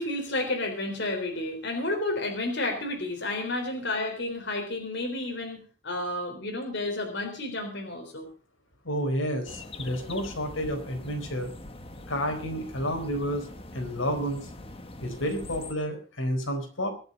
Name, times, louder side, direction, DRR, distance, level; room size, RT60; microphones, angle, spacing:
voice 1, 0.0-8.3, left 2 dB, 60° left, 3 dB, 3.8 m, -31 dB
voice 2, 8.8-11.5 12.1-13.5 13.7-14.5 15.0-16.9, equal, 80° left, 4 dB, 4.3 m, -30 dB
sound 1, 9.5-15.7, left 2 dB, 30° left, 1.4 m, -43 dB
23.5 x 7.9 x 5.3 m, 0.37 s
head